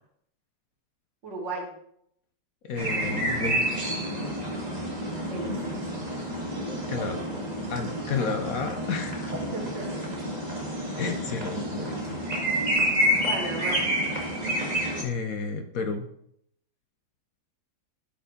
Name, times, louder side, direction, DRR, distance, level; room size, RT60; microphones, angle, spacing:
voice 1, 1.2-1.7 5.3-5.8 9.5-10.1 10.8-11.1 12.5-13.8, right 3 dB, 75° right, -2 dB, 3.1 m, -36 dB
voice 2, 2.6-3.8 6.9-7.2 7.7-9.3 11.0-12.2 15.0-16.1, left 5 dB, 60° left, 7 dB, 1.1 m, -31 dB
sound 1, 2.8-15.0, equal, 25° right, 1.9 m, -29 dB
12.0 x 4.6 x 5.2 m, 0.71 s
omnidirectional pair, 1.9 m